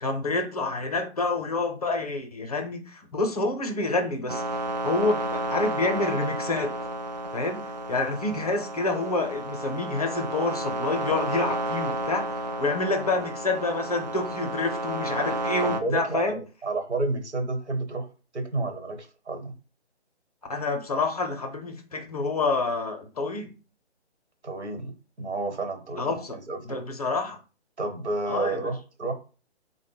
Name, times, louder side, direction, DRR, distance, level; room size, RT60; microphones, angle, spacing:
voice 1, 0.0-4.4 4.8-6.7 7.3-16.4 20.5-23.5 26.0-26.4 26.7-27.4 28.3-28.7, left 3 dB, 35° left, 4 dB, 0.6 m, -28 dB
sound 1, 4.3-15.8, right 1 dB, 40° right, 0.4 m, -31 dB
voice 2, 15.6-18.1 18.3-19.5 24.4-26.8 27.8-29.1, right 2 dB, 75° right, 5 dB, 1.0 m, -31 dB
3.7 x 2.1 x 3.5 m, 0.35 s
figure-of-eight pair, 145°, 34 cm